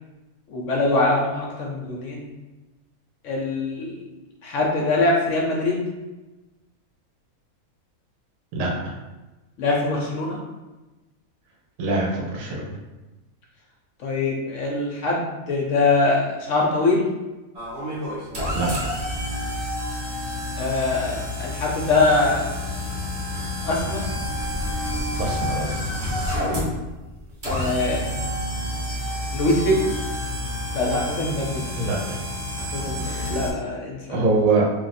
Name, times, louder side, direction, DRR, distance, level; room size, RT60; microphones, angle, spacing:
voice 1, 0.5-2.3 3.2-4.0 4.4-5.9 9.6-10.4 14.0-17.1 20.6-22.7 23.6-24.0 27.4-28.1 29.3-29.9 30.7-31.7 32.6-34.2, left 2 dB, 65° left, -1 dB, 0.9 m, -23 dB
voice 2, 8.5-8.9 11.8-12.8 18.5-19.0 25.2-25.8 31.8-32.2 33.0-33.3 34.1-34.7, right 3 dB, 70° right, -2 dB, 1.1 m, -24 dB
sound 1, 17.5-33.5, left 1 dB, 45° right, 1.1 m, -29 dB
2.6 x 2.3 x 4.0 m, 1.1 s
omnidirectional pair, 1.6 m